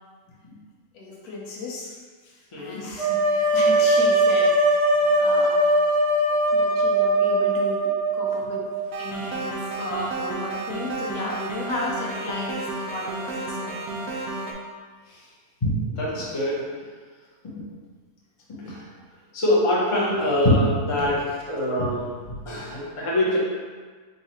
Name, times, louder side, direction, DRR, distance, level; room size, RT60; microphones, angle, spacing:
voice 1, 0.9-2.0 2.2-4.8 5.2-5.6 6.5-8.7 9.0-13.8 21.0-21.4, left 2 dB, 90° left, -3 dB, 1.3 m, -34 dB
sound 1, 3.0-8.9, right 1 dB, 60° right, 1.0 m, -20 dB
sound 2, 8.9-14.5, right 3 dB, 90° right, 1.1 m, -32 dB
voice 2, 15.6-16.6 17.4-17.7 18.5-18.8 19.3-23.4, left 1 dB, 30° left, -6 dB, 0.7 m, -24 dB
3.9 x 2.4 x 4.2 m, 1.5 s
omnidirectional pair, 1.5 m